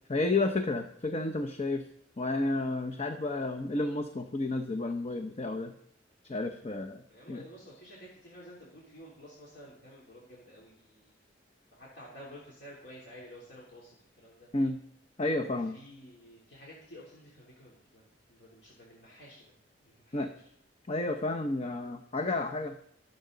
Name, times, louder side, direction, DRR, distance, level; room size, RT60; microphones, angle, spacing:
voice 1, 0.1-1.8 2.2-5.7 6.3-7.0 7.3-7.4 14.5-14.8 15.2-15.7 20.1-20.3 20.9-22.8, left 2 dB, 35° left, 6 dB, 0.8 m, -31 dB
voice 2, 7.1-11.2 11.7-14.5 15.6-18.0 18.3-20.5, equal, 70° left, -5 dB, 3.2 m, -52 dB
23.0 x 7.9 x 3.9 m, 0.69 s
head